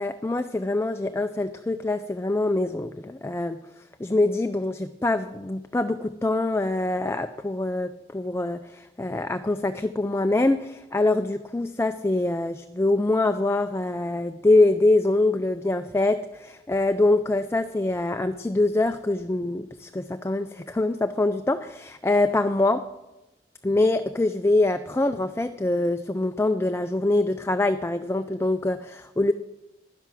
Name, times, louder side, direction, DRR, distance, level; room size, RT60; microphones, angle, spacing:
voice 1, 0.0-3.6 4.0-22.8 23.6-29.3, left 2 dB, 15° left, 9 dB, 0.4 m, -24 dB
12.0 x 10.5 x 6.1 m, 0.99 s
head